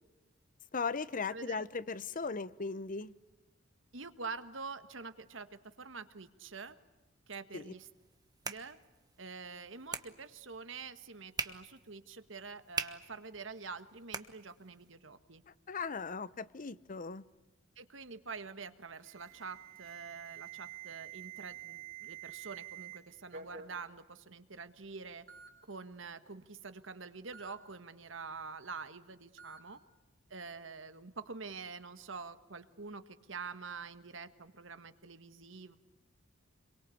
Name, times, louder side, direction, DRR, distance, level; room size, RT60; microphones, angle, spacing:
voice 1, 0.7-3.1 7.5-7.7 15.7-17.2, left 4 dB, 45° left, 16 dB, 0.8 m, -38 dB
voice 2, 1.3-1.6 3.9-6.8 7.3-7.9 8.4-8.8 9.2-15.4 17.8-25.2 25.6-29.8 30.3-35.8, right 4 dB, 70° right, 10 dB, 1.6 m, -46 dB
sound 1, 7.9-14.9, right 4 dB, 20° right, 1.3 m, -45 dB
Alarm, 19.0-23.0 23.3-23.7 24.6-24.7 25.3-25.5 27.3-27.5 29.4-29.6, right 10 dB, 50° right, 4.8 m, -48 dB
27.0 x 23.0 x 8.6 m, 1.1 s
head